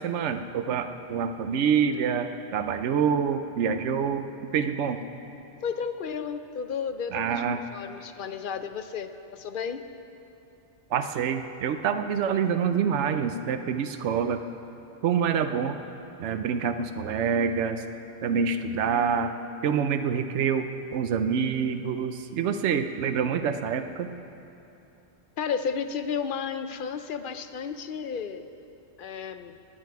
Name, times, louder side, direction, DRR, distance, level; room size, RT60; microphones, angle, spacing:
voice 1, 0.0-4.2 4.5-5.0 7.1-7.6 10.9-14.4 15.0-15.8 16.2-17.8 18.2-19.3 19.6-24.1, right 7 dB, 85° right, 9 dB, 0.9 m, -26 dB
voice 2, 5.6-7.4 7.7-9.8 25.4-28.4 29.0-29.6, left 6 dB, 55° left, 10 dB, 0.7 m, -32 dB
19.5 x 8.9 x 4.7 m, 2.8 s
omnidirectional pair, 1.2 m